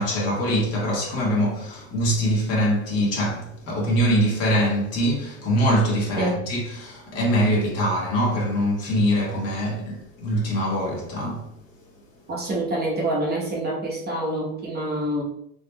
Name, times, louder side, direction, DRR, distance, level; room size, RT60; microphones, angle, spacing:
voice 1, 0.0-11.5, equal, 35° left, 1.4 m, -23 dB
voice 2, 12.3-15.2, right 1 dB, 25° right, 1.0 m, -26 dB
3.8 x 3.1 x 2.2 m
supercardioid pair, 120°, 41 cm